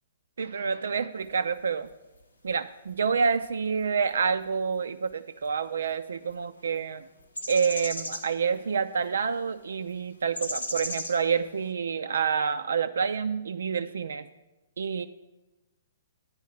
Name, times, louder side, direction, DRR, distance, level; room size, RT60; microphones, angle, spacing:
voice 1, 0.4-1.9 2.4-7.0 7.5-14.3 14.8-15.1, right 6 dB, 70° right, 9 dB, 0.3 m, -28 dB
sound 1, 1.2-1.5 1.8-2.2 2.5-2.6 3.4-3.5 3.8-3.9 5.0-5.1 5.4-5.5 5.9-6.0 6.3-6.8 7.2-9.0 9.4-9.5 10.3-11.7, left 1 dB, 85° left, 1.2 m, -36 dB
9.1 x 4.7 x 7.6 m, 1.0 s
figure-of-eight pair, 120°, 0 cm